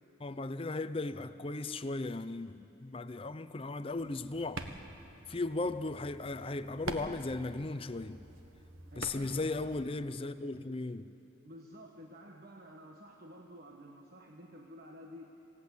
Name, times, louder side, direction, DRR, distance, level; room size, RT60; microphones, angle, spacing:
voice 1, 0.2-4.7 5.3-8.2 9.0-11.0, left 2 dB, 25° left, 0.6 m, -36 dB
sound 1, 3.9-9.8, right 2 dB, 80° right, 1.5 m, -46 dB
voice 2, 8.9-9.7 11.4-15.3, equal, 45° right, 1.4 m, -51 dB
27.5 x 17.5 x 8.4 m
head